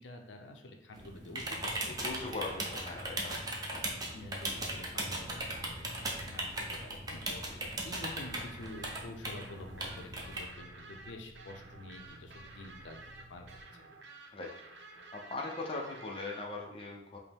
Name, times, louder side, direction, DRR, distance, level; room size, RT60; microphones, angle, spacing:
voice 1, 0.0-2.5 3.0-13.0 13.3-13.5 13.7-13.8, left 2 dB, 90° left, 3 dB, 0.5 m, -49 dB
sound 1, 0.9-10.4, right 1 dB, 20° right, 0.5 m, -38 dB
voice 2, 2.0-3.3 7.5-7.6 14.3-14.5 15.1-17.2, left 3 dB, 30° left, 0 dB, 0.5 m, -40 dB
sound 2, 5.0-13.6, right 2 dB, 45° right, 0.8 m, -57 dB
sound 3, 8.1-16.4, right 3 dB, 75° right, 0.6 m, -52 dB
5.1 x 2.0 x 3.4 m, 0.82 s
head